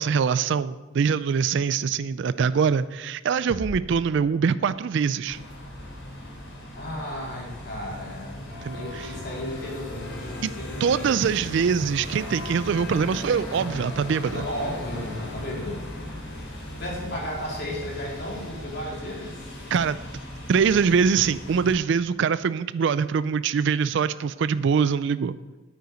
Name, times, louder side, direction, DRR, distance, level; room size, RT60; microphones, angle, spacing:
voice 1, 0.0-5.4 8.6-8.8 10.4-10.5 10.8-14.4 19.7-20.0 20.5-25.3, right 6 dB, 60° right, 14 dB, 0.3 m, -23 dB
sound 1, 3.5-5.2, left 1 dB, 10° left, 0.6 m, -39 dB
sound 2, 5.3-21.7, left 1 dB, 80° left, 3.3 m, -37 dB
voice 2, 6.7-8.5 8.7-11.4 14.3-15.8 16.8-19.4, left 1 dB, 55° left, -3 dB, 3.7 m, -34 dB
9.6 x 9.0 x 5.2 m, 1.2 s
head